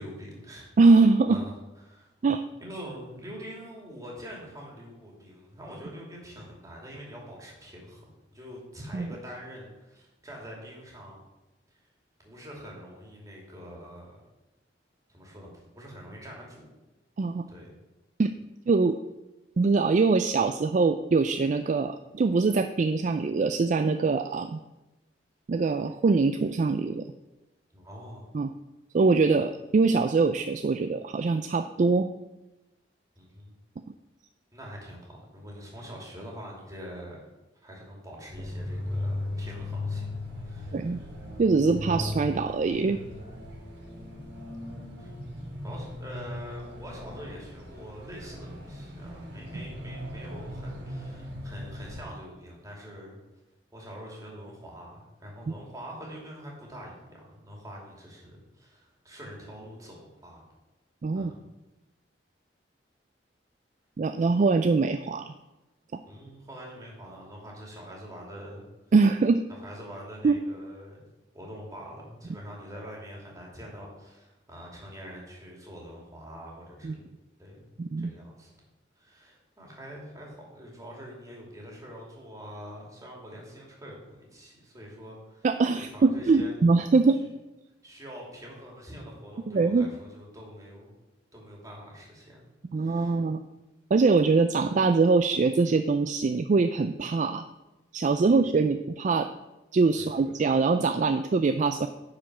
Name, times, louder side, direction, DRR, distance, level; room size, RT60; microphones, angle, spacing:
voice 1, 0.0-0.7 1.3-1.5 1.8-2.1 2.6-8.1 8.3-11.2 12.2-14.2 15.1-16.7 17.5-17.7 27.7-28.2 33.2-33.5 34.5-37.3 37.5-41.3 44.2-44.5 45.0-45.1 45.6-53.2 53.7-60.4 61.1-61.4 66.1-68.6 69.6-71.0 71.3-77.0 77.4-77.6 78.0-78.5 79.0-85.5 85.7-86.5 87.8-90.9 91.3-92.5 92.7-93.2 98.2-98.4 100.0-100.3, equal, 20° right, -2 dB, 2.7 m, -44 dB
voice 2, 0.8-1.4 2.2-2.4 8.9-9.1 17.2-17.4 18.2-18.3 18.7-19.0 19.6-24.6 25.5-27.0 28.3-28.5 28.9-32.1 40.7-41.0 41.4-43.0 49.5-49.6 61.0-61.3 64.0-65.3 68.9-69.4 70.2-70.4 76.8-76.9 77.8-78.1 85.4-87.2 89.5-89.9 92.7-93.4 93.9-97.4 97.9-99.3 99.7-101.9, right 4 dB, 45° right, 9 dB, 0.3 m, -23 dB
sound 1, 38.3-52.0, left 1 dB, 85° right, 3.9 m, -37 dB
10.0 x 5.0 x 6.0 m, 1.0 s
head